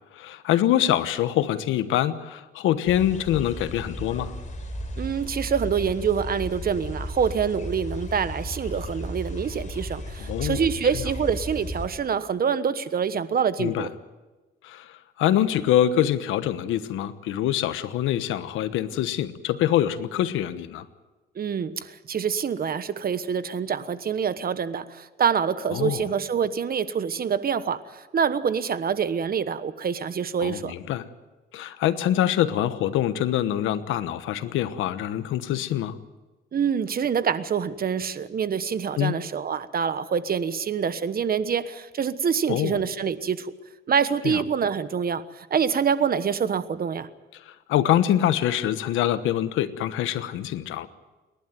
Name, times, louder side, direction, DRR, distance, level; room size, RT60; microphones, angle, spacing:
voice 1, 0.1-4.3 10.2-10.6 13.6-13.9 14.6-20.8 25.7-26.0 30.4-31.0 31.5-36.0 39.0-39.1 42.5-42.8 44.2-44.4 47.3-50.9, left 11 dB, 90° left, 12 dB, 1.2 m, -25 dB
sound 1, 2.9-11.9, equal, 40° left, 4.5 m, -35 dB
voice 2, 5.0-13.9 21.3-30.7 36.5-43.5 43.9-47.1, right 7 dB, 50° right, 13 dB, 1.2 m, -26 dB
28.5 x 11.5 x 9.3 m, 1.2 s
cardioid pair, 90°, 20 cm